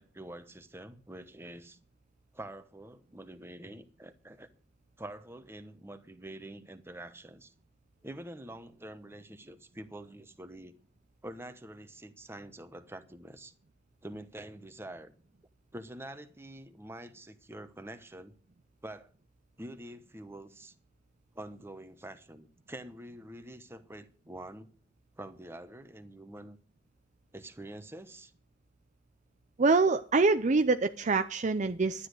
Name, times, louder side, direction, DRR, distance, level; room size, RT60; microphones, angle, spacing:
voice 1, 0.0-1.8 2.3-4.5 5.0-7.5 8.0-10.8 11.2-13.5 14.0-15.1 15.7-18.3 18.8-19.1 19.6-20.7 21.3-24.7 25.2-26.6 27.3-28.3, right 1 dB, 15° right, 1.0 m, -46 dB
voice 2, 29.6-32.1, right 3 dB, 40° right, 0.6 m, -25 dB
12.5 x 10.0 x 6.5 m
head